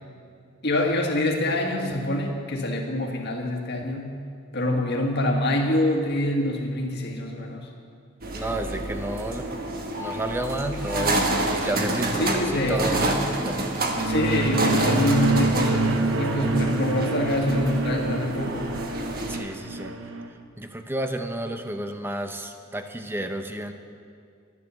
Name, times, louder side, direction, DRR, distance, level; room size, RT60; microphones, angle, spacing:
voice 1, 0.6-4.2 4.5-7.7 12.2-13.2 14.0-18.7, left 1 dB, 50° left, 1 dB, 1.7 m, -25 dB
sound 1, 8.2-19.4, right 2 dB, 40° right, 1.3 m, -28 dB
voice 2, 8.3-9.5 10.0-14.0 19.3-20.0 20.6-23.7, right 1 dB, 10° right, 7 dB, 0.7 m, -31 dB
sound 2, 13.7-20.3, right 3 dB, 60° right, 0.8 m, -27 dB
11.5 x 11.0 x 6.9 m, 2.3 s
head